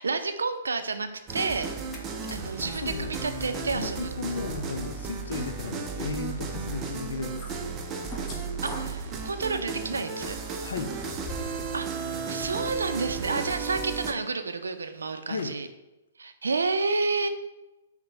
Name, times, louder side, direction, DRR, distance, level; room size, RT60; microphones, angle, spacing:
voice 1, 0.0-1.7 2.3-4.1 8.6-10.4 11.7-15.7 16.2-17.3, right 4 dB, 85° right, 8 dB, 0.5 m, -30 dB
sound 1, 1.0-1.3 1.7-3.9 4.3-4.6 5.0-6.0 6.7-8.5 8.8-8.9 12.4-13.1 14.0-15.5, left 2 dB, 45° left, 1.1 m, -51 dB
sound 2, 1.3-14.1, right 5 dB, 25° right, 0.5 m, -34 dB
sound 3, 1.7-2.0 2.3-11.6 12.0-12.1, left 3 dB, 20° left, 0.9 m, -46 dB
voice 2, 2.6-3.2 3.7-7.7 10.6-10.9 15.3-15.5, left 4 dB, 75° left, 3 dB, 0.5 m, -35 dB
5.6 x 2.1 x 4.4 m, 0.98 s
hypercardioid pair, 130°, 0 cm